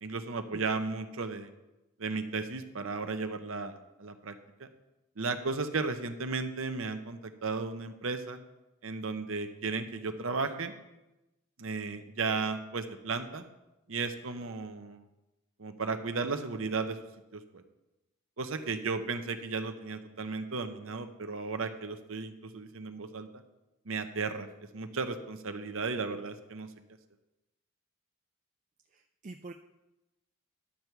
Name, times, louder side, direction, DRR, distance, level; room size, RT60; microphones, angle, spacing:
voice 1, 0.0-1.5 2.0-4.3 4.6-4.7 5.2-8.4 8.8-10.7 11.6-13.4 13.9-15.1 15.6-17.0 17.3-17.6 18.4-23.4 23.9-24.5 24.7-26.7, right 4 dB, 65° right, 8 dB, 0.8 m, -35 dB
voice 2, 28.9-29.5, right 3 dB, 35° right, 5 dB, 0.3 m, -45 dB
11.5 x 6.7 x 4.6 m, 0.98 s
head